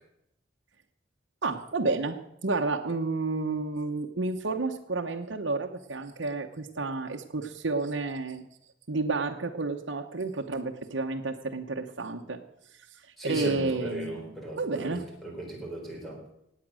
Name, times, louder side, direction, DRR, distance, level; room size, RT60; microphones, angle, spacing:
voice 1, 1.4-8.4 8.9-12.4 13.2-15.0, right 3 dB, 70° right, 2 dB, 1.0 m, -31 dB
voice 2, 13.2-16.2, right 1 dB, ahead, -1 dB, 3.9 m, -37 dB
18.0 x 8.5 x 6.3 m, 0.78 s
head